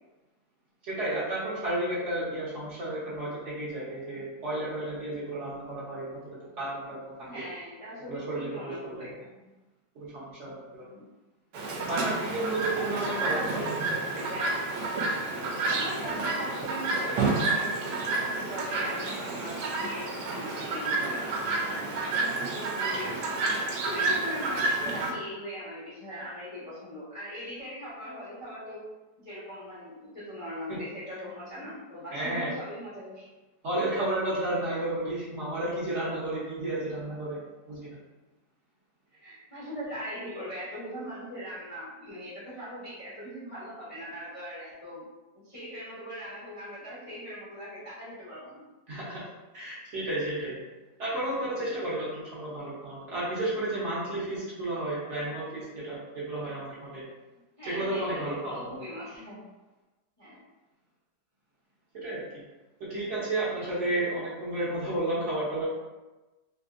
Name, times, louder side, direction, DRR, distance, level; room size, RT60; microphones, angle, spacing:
voice 1, 0.8-7.4 8.1-9.1 9.9-10.8 11.8-13.7 30.7-30.8 32.1-32.5 33.6-37.4 37.7-37.9 48.9-50.6 51.0-57.0 57.6-58.7 61.9-62.2 62.8-65.6, right 1 dB, 50° right, -8 dB, 1.0 m, -32 dB
voice 2, 7.2-9.5 10.8-11.0 12.6-14.6 15.6-23.5 23.8-28.8 29.2-33.3 39.2-45.1 45.3-49.0 57.6-59.5 60.2-60.4, equal, 35° left, -10 dB, 0.5 m, -40 dB
Chirp tweet, 11.5-25.1, right 3 dB, 80° right, 1.2 m, -30 dB
3.4 x 2.7 x 2.4 m, 1.1 s
omnidirectional pair, 1.8 m